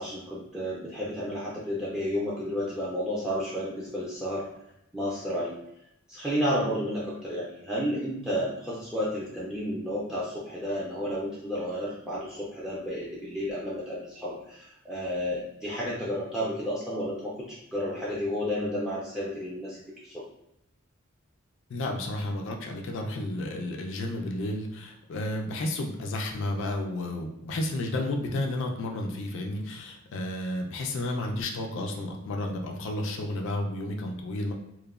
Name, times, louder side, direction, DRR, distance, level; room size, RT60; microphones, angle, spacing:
voice 1, 0.0-4.5 4.9-5.5 6.1-20.2, equal, 5° right, -6 dB, 0.4 m, -32 dB
voice 2, 21.7-34.5, left 1 dB, 65° left, 2 dB, 0.4 m, -32 dB
3.0 x 2.1 x 2.3 m, 0.81 s
head